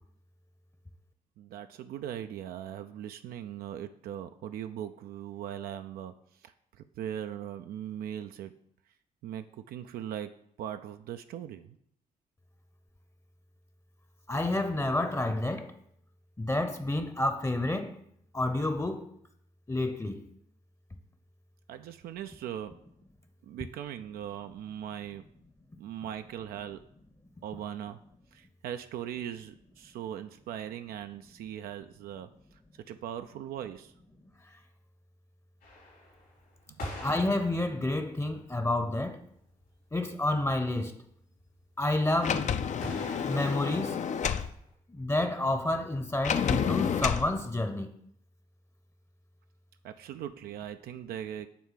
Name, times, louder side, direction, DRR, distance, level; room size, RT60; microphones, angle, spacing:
voice 1, 1.4-8.5 9.2-11.8 21.7-22.8 23.4-25.2 25.8-26.8 27.4-28.0 28.3-32.6 32.9-33.9 36.7-36.8 49.8-51.5, right 10 dB, 70° right, 0.4 m, -40 dB
voice 2, 14.3-15.7 16.4-18.0 18.3-19.1 19.7-20.2 37.0-39.2 39.9-41.0 41.8-42.5 43.2-44.0 44.9-48.0, left 2 dB, 15° left, 0.7 m, -29 dB
sound 1, 35.6-38.4 39.0-39.1 39.3-39.4 39.7-39.8 40.0-40.5 42.8-44.7, left 1 dB, 70° left, 2.6 m, -44 dB
Sliding door, 42.2-44.5 46.2-47.3, left 7 dB, 50° left, 0.5 m, -29 dB
6.0 x 3.6 x 5.7 m
hypercardioid pair, 50°, 16 cm